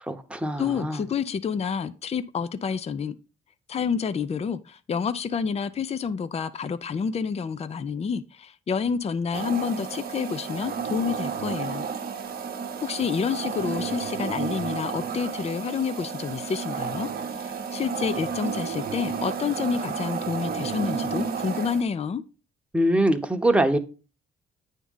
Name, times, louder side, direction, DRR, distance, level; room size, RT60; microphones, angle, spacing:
voice 1, 0.1-1.0 22.7-23.8, right 1 dB, 5° right, 1.0 m, -23 dB
voice 2, 0.6-3.2 3.7-11.8 12.8-17.1 17.4-22.2, left 6 dB, 30° left, 0.5 m, -29 dB
sound 1, 9.3-21.8, right 6 dB, 50° right, 0.9 m, -32 dB
9.1 x 3.7 x 5.5 m
cardioid pair, 90°, 20 cm